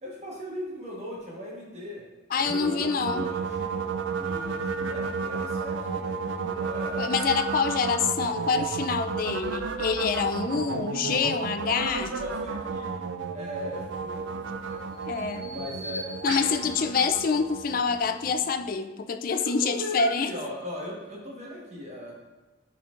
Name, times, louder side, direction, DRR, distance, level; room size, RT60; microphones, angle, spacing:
voice 1, 0.0-2.0 2.4-7.2 10.7-10.8 11.2-12.9 13.3-14.9 15.5-16.4 19.3-22.1, equal, 35° right, -3 dB, 1.3 m, -39 dB
voice 2, 2.3-3.3 7.0-12.1 15.1-15.5 16.2-20.3, left 5 dB, 45° left, 8 dB, 0.3 m, -26 dB
sound 1, 2.4-18.6, right 5 dB, 70° right, 0.4 m, -33 dB
Bird vocalization bird call bird song, 13.8-18.0, equal, 15° right, 1.8 m, -42 dB
8.9 x 4.4 x 2.5 m, 1.2 s
head